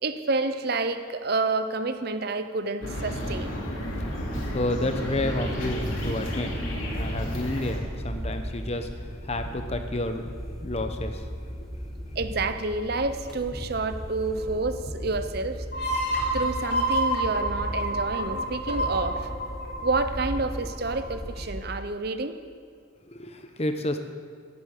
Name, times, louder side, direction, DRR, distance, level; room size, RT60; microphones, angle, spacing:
voice 1, 0.0-3.5 12.2-15.7 16.3-19.3 19.8-22.3, right 3 dB, 50° right, 10 dB, 0.7 m, -29 dB
sound 1, 2.8-7.8, equal, 75° left, 3.0 m, -32 dB
sound 2, 3.3-21.5, equal, ahead, 1.8 m, -36 dB
voice 2, 4.5-6.5 6.9-8.9 9.2-11.2 23.1-24.0, left 1 dB, 30° left, 7 dB, 0.9 m, -30 dB
sound 3, 15.7-21.2, right 1 dB, 55° left, 2.8 m, -29 dB
16.5 x 8.4 x 6.6 m, 2.1 s
head